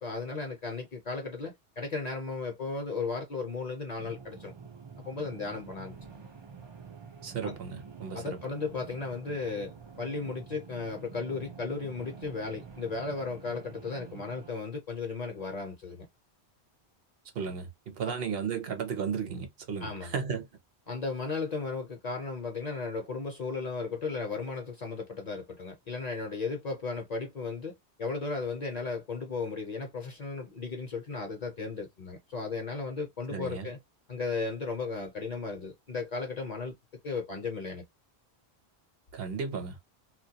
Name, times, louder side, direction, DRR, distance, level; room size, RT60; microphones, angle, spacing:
voice 1, 0.0-4.5 5.0-5.9 7.4-7.6 8.1-16.1 18.1-18.2 19.8-20.2 20.9-33.8 34.1-36.7 37.0-37.8, left 4 dB, 45° left, 0.6 m, -35 dB
sound 1, 4.0-14.5, right 5 dB, 50° right, 0.3 m, -48 dB
voice 2, 7.2-8.4 17.3-20.5 33.3-33.7 39.1-39.8, right 6 dB, 65° right, 0.8 m, -34 dB
2.2 x 2.1 x 2.7 m
omnidirectional pair, 1.1 m